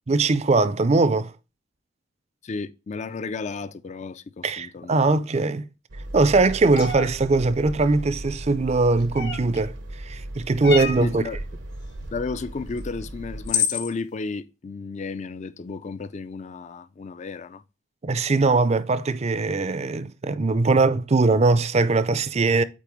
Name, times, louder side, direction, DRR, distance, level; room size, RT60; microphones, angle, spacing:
voice 1, 0.1-1.3 4.4-5.7 6.1-9.7 10.1-11.2 18.0-22.6, right 3 dB, 35° right, 0.5 m, -21 dB
voice 2, 2.4-5.1 11.0-11.4 12.1-17.6, left 4 dB, 40° left, 0.4 m, -33 dB
sound 1, 5.9-13.5, right 1 dB, 75° right, 0.8 m, -37 dB
sound 2, 6.7-7.1 9.1-9.6 10.6-11.1 12.8-12.9 13.5-13.9, left 6 dB, 60° left, 1.2 m, -26 dB
8.4 x 4.2 x 3.1 m
head